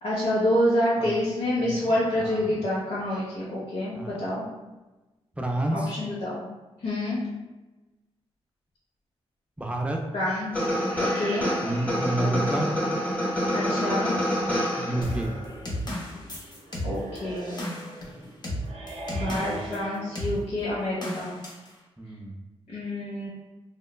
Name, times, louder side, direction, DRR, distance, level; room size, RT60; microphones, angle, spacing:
voice 1, 0.0-4.5 5.7-6.5 6.8-7.2 10.1-10.5 11.0-11.5 13.5-14.1 16.8-17.6 19.1-21.3 22.7-23.3, left 1 dB, 75° left, -8 dB, 0.7 m, -27 dB
voice 2, 1.6-2.6 3.9-4.2 5.4-6.0 9.6-10.0 11.6-12.7 14.7-15.3 19.4-19.6 22.0-22.4, right 1 dB, 10° right, 2 dB, 0.3 m, -30 dB
sound 1, 10.5-15.3, equal, 15° left, 1.0 m, -27 dB
sound 2, 10.9-20.6, right 2 dB, 60° right, 0.6 m, -42 dB
sound 3, 15.0-19.8 20.2-20.4 21.0-21.7, equal, 40° left, 0.6 m, -34 dB
3.0 x 2.1 x 2.2 m, 1.1 s
cardioid pair, 105°, 11 cm